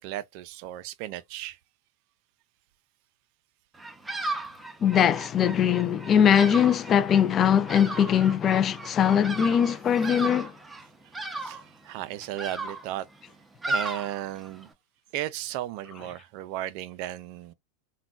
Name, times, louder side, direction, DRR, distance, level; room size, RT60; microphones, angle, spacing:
voice 1, 0.0-1.6 11.3-13.1 13.7-14.7 15.1-17.5, right 13 dB, 55° right, 0.4 m, -35 dB
Bird vocalization bird call bird song, 3.7-14.7, right 2 dB, 10° right, 0.6 m, -36 dB
voice 2, 4.8-10.5, left 8 dB, 30° left, 0.4 m, -21 dB
3.7 x 2.2 x 2.4 m
hypercardioid pair, 110°, 0 cm